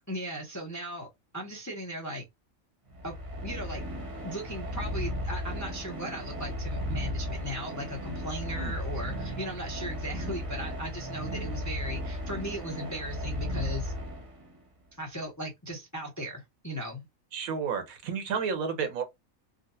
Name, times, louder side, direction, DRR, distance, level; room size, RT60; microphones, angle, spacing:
voice 1, 0.1-1.1 1.3-2.2 3.0-3.2 3.4-3.8 4.2-13.9 15.0-17.1, equal, 20° left, 0.5 m, -37 dB
sound 1, 2.9-14.6, equal, 30° right, 0.8 m, -35 dB
voice 2, 17.3-19.0, right 6 dB, 85° right, 1.3 m, -31 dB
3.9 x 2.1 x 2.6 m
omnidirectional pair, 1.4 m